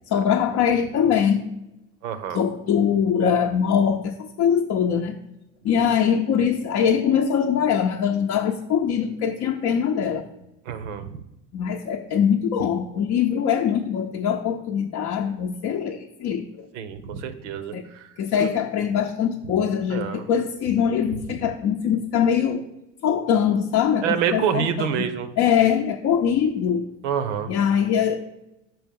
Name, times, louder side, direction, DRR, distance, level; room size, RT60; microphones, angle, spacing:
voice 1, 0.1-1.4 2.3-5.2 5.6-10.2 11.5-16.7 17.7-17.8 18.2-22.6 23.0-25.1 25.4-26.9 27.5-28.2, left 8 dB, 45° left, 1 dB, 0.6 m, -22 dB
voice 2, 2.0-2.4 10.7-11.2 16.7-18.1 18.4-18.5 19.9-20.2 24.0-25.3 27.0-27.5, right 8 dB, 70° right, 11 dB, 0.8 m, -27 dB
6.2 x 4.5 x 5.3 m, 0.89 s
hypercardioid pair, 70°, 37 cm